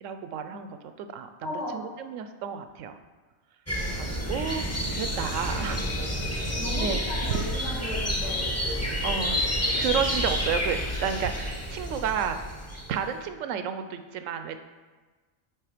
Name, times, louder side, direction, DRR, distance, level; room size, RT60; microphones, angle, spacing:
voice 1, 0.0-3.0 3.8-5.9 6.2-7.0 7.3-7.4 9.0-9.4 9.7-12.4 12.9-14.6, right 7 dB, 80° right, 8 dB, 1.0 m, -32 dB
voice 2, 1.4-1.8 6.6-8.5, left 1 dB, 65° left, -6 dB, 1.5 m, -35 dB
sound 1, 3.7-13.1, equal, 15° left, 0.8 m, -29 dB
9.2 x 3.5 x 5.0 m, 1.3 s
omnidirectional pair, 1.3 m